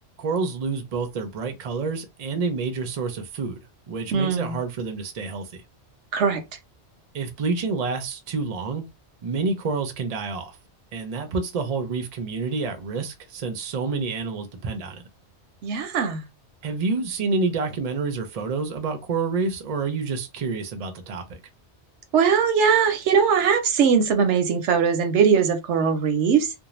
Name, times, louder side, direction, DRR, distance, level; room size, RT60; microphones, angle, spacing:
voice 1, 0.2-3.6 3.9-5.5 7.1-8.9 9.2-10.6 10.9-15.0 16.6-21.3, right 4 dB, 45° right, 0.5 m, -28 dB
voice 2, 4.1-4.6 6.1-6.4 15.6-16.3 22.1-26.5, right 6 dB, 85° right, 0.9 m, -20 dB
2.5 x 2.0 x 3.1 m
omnidirectional pair, 1.2 m